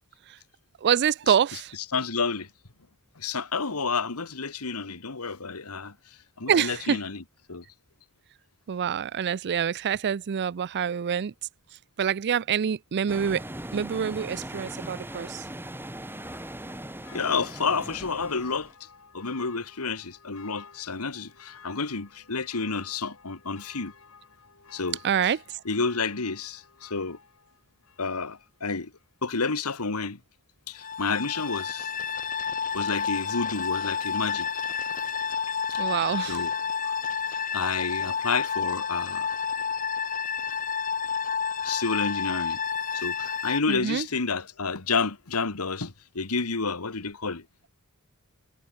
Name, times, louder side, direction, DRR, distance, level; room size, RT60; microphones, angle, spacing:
voice 1, 0.8-1.7 6.5-7.0 8.7-11.3 12.0-13.4 13.7-15.4 25.0-25.4 35.8-36.4 43.7-44.1, right 8 dB, 50° right, 0.4 m, -26 dB
voice 2, 1.9-2.5 3.2-5.9 6.4-7.2 7.5-7.6 17.1-18.7 19.1-23.9 24.7-25.0 25.2-25.3 25.7-27.2 28.0-28.9 29.2-30.2 30.7-31.9 32.7-34.5 36.2-36.5 37.5-39.3 41.6-42.6 42.9-47.4, left 4 dB, 85° left, 1.8 m, -30 dB
sound 1, 13.1-18.7, right 1 dB, 10° right, 3.4 m, -39 dB
Church bell, 14.9-28.6 29.0-29.1, left 5 dB, 70° left, 6.4 m, -53 dB
sound 2, 30.8-43.6, left 6 dB, 40° left, 1.9 m, -30 dB
head